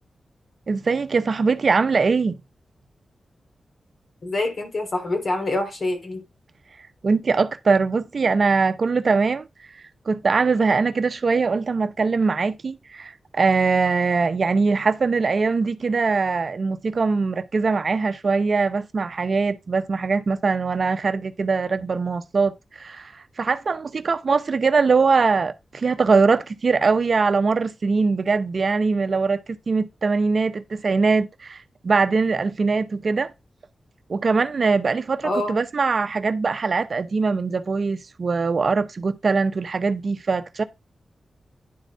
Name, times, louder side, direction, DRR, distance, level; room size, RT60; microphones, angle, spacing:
voice 1, 0.7-2.4 7.0-9.5 10.1-33.3 34.1-40.6, right 4 dB, 55° right, 0.7 m, -22 dB
voice 2, 4.2-6.2 35.2-35.5, left 2 dB, 55° left, 2.8 m, -26 dB
10.5 x 4.1 x 4.5 m
cardioid pair, 60°, 0 cm